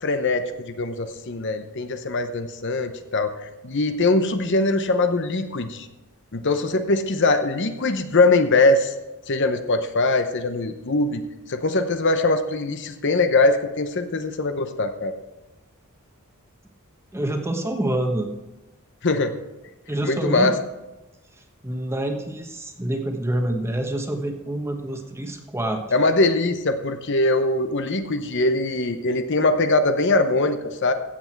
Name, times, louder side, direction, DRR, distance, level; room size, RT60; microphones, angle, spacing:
voice 1, 0.0-3.3 3.6-5.9 6.3-8.9 9.3-11.2 11.5-15.1 19.0-19.3 20.0-20.5 25.9-30.9, left 2 dB, 55° left, 8 dB, 0.8 m, -22 dB
voice 2, 17.1-18.3 19.9-20.5 21.6-25.8, right 1 dB, 10° right, 4 dB, 1.2 m, -27 dB
15.5 x 8.0 x 4.6 m, 1.0 s
head